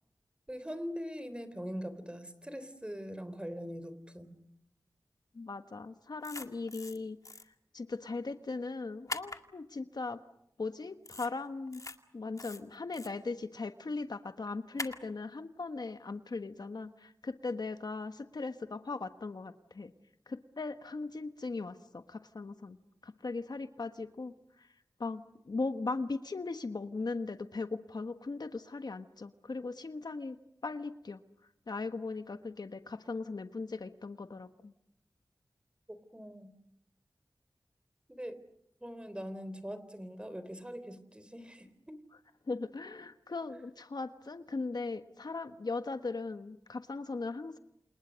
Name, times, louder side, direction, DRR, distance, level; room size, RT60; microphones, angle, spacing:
voice 1, 0.5-4.4 35.9-36.5 38.1-38.4 38.8-42.0, equal, 15° right, 12 dB, 3.7 m, -42 dB
voice 2, 5.3-7.2 7.7-10.2 10.6-11.8 12.1-19.9 20.3-22.8 23.0-24.3 25.0-30.4 30.6-31.2 31.7-34.7 42.5-47.6, left 3 dB, 65° left, 9 dB, 1.4 m, -38 dB
sound 1, 6.2-7.0 7.2-7.4 9.1-9.4 11.1-11.3 11.7-12.0 12.4-13.1 14.8-15.0, left 2 dB, 50° left, 2.2 m, -41 dB
28.5 x 28.5 x 6.4 m, 0.75 s
wide cardioid pair, 55°, 7 cm